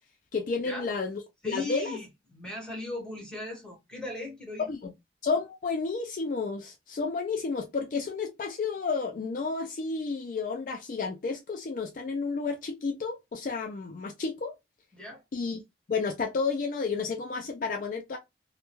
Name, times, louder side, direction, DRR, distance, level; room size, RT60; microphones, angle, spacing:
voice 1, 0.3-1.2 1.5-2.0 4.7-4.9 5.2-14.5 15.3-15.6 15.9-18.2, left 4 dB, 45° left, 0.3 m, -31 dB
voice 2, 1.4-4.7 14.9-15.2, left 2 dB, 5° left, 1.1 m, -38 dB
2.2 x 2.1 x 2.9 m
head